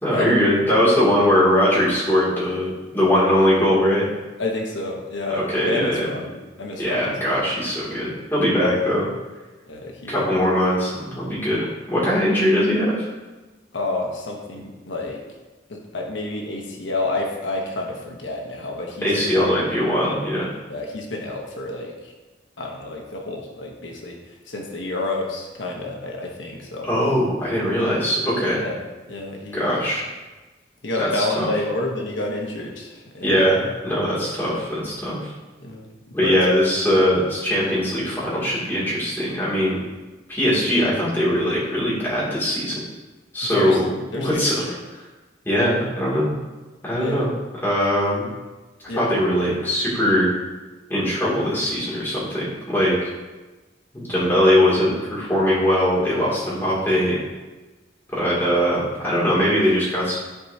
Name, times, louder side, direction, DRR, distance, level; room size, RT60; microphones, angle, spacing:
voice 1, 0.0-4.0 5.4-6.1 6.8-9.1 10.1-13.1 19.0-20.5 26.8-28.6 29.5-30.0 31.0-31.5 33.2-35.3 36.1-39.8 40.3-42.8 43.3-44.5 44.9-45.0 45.4-46.3 46.8-47.3 47.6-48.3 48.9-50.3 50.9-53.0 53.9-57.2 58.1-60.2, equal, 10° left, -8 dB, 2.6 m, -21 dB
voice 2, 4.4-7.5 9.7-10.3 13.7-15.2 15.7-19.3 20.7-22.1 22.6-24.2 24.5-26.9 28.5-28.8 29.1-29.8 30.8-33.4 35.6-35.9 36.2-36.4 43.5-43.8 44.1-44.8 47.0-47.3 48.9-49.1, left 2 dB, 90° left, 0 dB, 1.2 m, -29 dB
13.5 x 4.6 x 2.8 m, 1.2 s
head